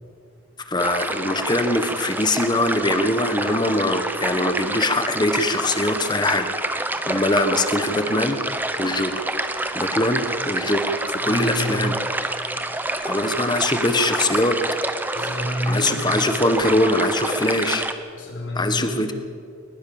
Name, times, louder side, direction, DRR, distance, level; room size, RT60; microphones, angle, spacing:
voice 1, 0.6-9.3 9.7-11.9 13.0-14.6 15.7-17.9 18.5-19.1, left 1 dB, 20° left, 8 dB, 1.3 m, -22 dB
sound 1, 0.8-17.9, right 2 dB, 10° right, 0.9 m, -28 dB
voice 2, 11.2-11.9 15.1-16.2 18.1-19.1, equal, 70° left, -1 dB, 3.4 m, -28 dB
21.0 x 20.0 x 7.2 m, 2.4 s
head